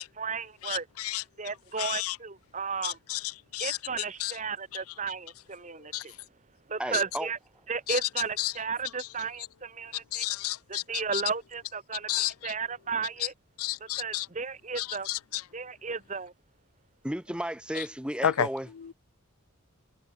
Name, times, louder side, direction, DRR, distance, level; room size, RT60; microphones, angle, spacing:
voice 1, 0.0-0.8 1.4-3.0 3.6-5.9 6.7-7.4 7.7-10.2 10.9-13.3 14.0-15.1 15.5-16.3, right 5 dB, 35° right, 1.2 m, -34 dB
voice 2, 0.6-1.2 1.8-2.2 2.8-3.2 3.5-3.8 4.2-4.3 5.9-6.0 7.9-8.0 8.4-8.5 10.1-10.8 11.1-11.2 12.1-12.5 13.6-14.3 14.8-15.4 17.8-17.9 18.2-18.5 18.8-18.9, left 12 dB, 90° left, 0.5 m, -31 dB
voice 3, 6.8-7.3 17.0-18.7, equal, 5° right, 1.5 m, -33 dB
head